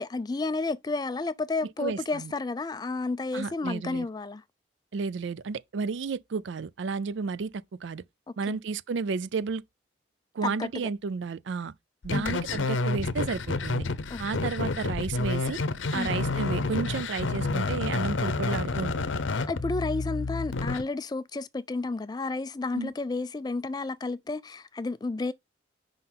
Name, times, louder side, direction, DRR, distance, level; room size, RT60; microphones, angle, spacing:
voice 1, 0.0-4.4 8.5-8.6 10.4-10.7 12.1-12.4 14.1-14.2 14.6-14.8 15.9-16.1 19.5-25.3, left 3 dB, 20° left, 0.3 m, -31 dB
voice 2, 1.8-2.3 3.3-4.1 4.9-8.0 8.4-9.6 10.3-11.7 12.0-13.8 14.2-15.6 15.9-19.2 22.7-22.9, right 5 dB, 75° right, 0.4 m, -32 dB
sound 1, 12.0-20.8, left 3 dB, 90° left, 0.7 m, -29 dB
5.3 x 3.7 x 5.9 m
head